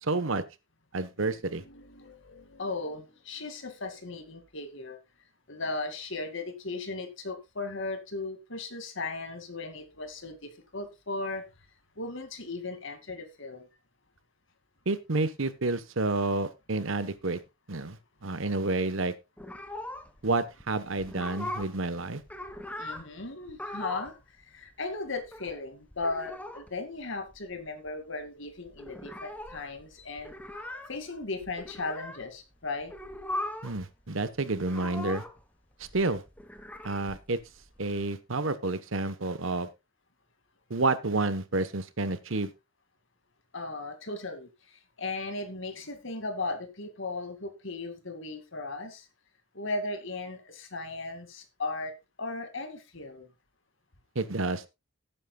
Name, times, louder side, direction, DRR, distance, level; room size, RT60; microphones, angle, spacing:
voice 1, 0.0-0.4 0.9-1.6 14.9-17.4 17.7-19.1 20.2-22.2 33.6-35.2 35.8-36.2 36.8-37.4 37.8-39.7 40.7-42.5 54.1-54.6, right 3 dB, 65° right, 13 dB, 1.1 m, -29 dB
voice 2, 1.6-5.0 5.5-11.5 12.0-13.7 22.8-32.9 43.5-49.1 49.5-51.9 52.2-53.3, left 3 dB, 60° left, 7 dB, 2.2 m, -37 dB
sound 1, 19.4-20.3 20.6-20.7 21.0-21.8 22.1-23.1 23.5-24.2 24.4-24.5 24.7-25.5 25.9-26.7 27.0-27.1 27.3-27.9 28.2-28.3 28.5-32.2 32.8-33.8 34.1-35.5 35.8-38.0, left 1 dB, 5° left, 1.1 m, -40 dB
18.0 x 9.1 x 2.3 m, 0.24 s
head